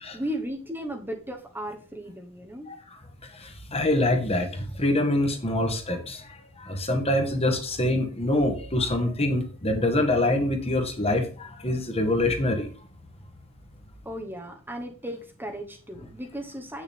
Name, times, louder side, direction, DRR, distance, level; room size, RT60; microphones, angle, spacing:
voice 1, 0.1-2.7 14.0-16.8, equal, 10° right, 2 dB, 1.1 m, -35 dB
voice 2, 3.3-6.3 6.6-12.7, left 1 dB, 30° left, 4 dB, 1.5 m, -25 dB
8.2 x 6.6 x 3.6 m, 0.40 s
head